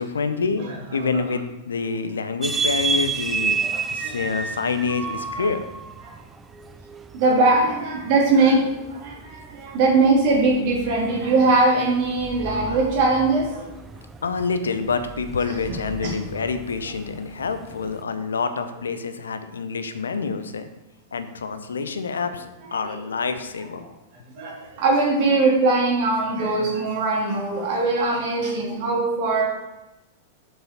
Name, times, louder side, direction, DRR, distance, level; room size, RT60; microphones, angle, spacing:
voice 1, 0.0-3.6 3.9-5.7 14.2-20.7 21.1-23.8, left 5 dB, 70° left, 10 dB, 0.7 m, -27 dB
sound 1, 2.4-18.0, right 5 dB, 15° right, 0.4 m, -32 dB
voice 2, 3.6-4.3 6.0-6.1 7.1-13.7 16.0-16.1 22.7-22.9 23.8-23.9 24.4-29.4, right 3 dB, 45° right, -2 dB, 2.1 m, -21 dB
7.0 x 6.4 x 4.2 m, 0.99 s
figure-of-eight pair, 95°, 0 cm